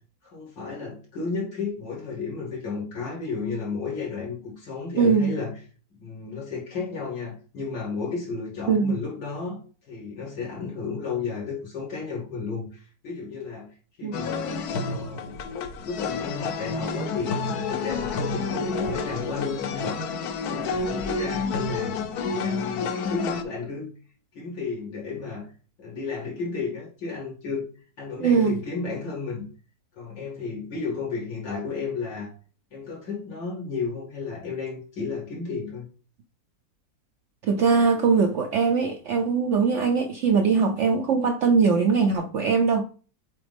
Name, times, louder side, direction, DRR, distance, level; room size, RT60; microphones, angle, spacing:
voice 1, 0.2-5.5 6.0-13.7 14.0-17.4 17.6-20.0 20.5-21.9 22.3-23.9 24.3-25.5 25.8-27.7 28.0-29.4 30.0-32.3 32.7-35.9, left 4 dB, 85° left, 3.0 m, -33 dB
voice 2, 5.0-5.4 8.7-9.0 14.0-14.1 28.2-28.6 37.4-42.8, right 5 dB, 70° right, 0.7 m, -21 dB
sound 1, 14.1-23.4, left 4 dB, 65° left, 1.1 m, -29 dB
7.8 x 4.0 x 3.4 m
omnidirectional pair, 1.8 m